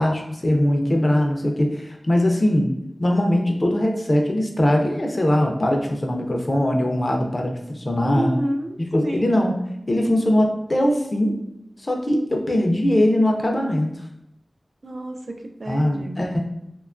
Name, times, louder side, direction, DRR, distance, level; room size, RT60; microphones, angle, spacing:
voice 1, 0.0-2.7 3.0-8.4 8.8-9.6 9.9-11.3 11.8-13.9 15.7-16.4, left 1 dB, 40° left, 2 dB, 0.4 m, -21 dB
voice 2, 8.0-9.4 14.8-16.2, right 1 dB, 70° right, 3 dB, 0.3 m, -29 dB
2.8 x 2.2 x 2.4 m, 0.80 s
wide cardioid pair, 75°, 0 cm